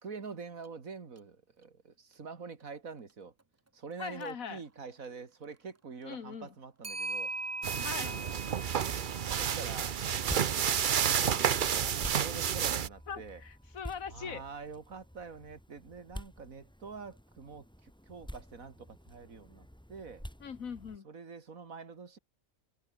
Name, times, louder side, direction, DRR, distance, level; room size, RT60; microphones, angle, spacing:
voice 1, 0.0-3.3 3.7-7.3 7.7-8.4 8.7-9.0 9.3-10.0 10.3-13.4 14.1-20.3 21.0-22.2, right 5 dB, 85° right, 2.6 m, -46 dB
Clock, 0.6-0.7 1.2-1.3 4.1-4.3 6.8-11.1, right 3 dB, 20° right, 0.4 m, -41 dB
voice 2, 4.0-4.6 6.0-6.5 7.8-8.2 13.1-14.4 20.4-21.1, left 6 dB, 85° left, 1.9 m, -41 dB
sound 1, 7.6-12.9, right 8 dB, 45° right, 0.7 m, -30 dB
sound 2, 9.8-21.0, equal, 5° left, 2.7 m, -48 dB
omnidirectional pair, 1.4 m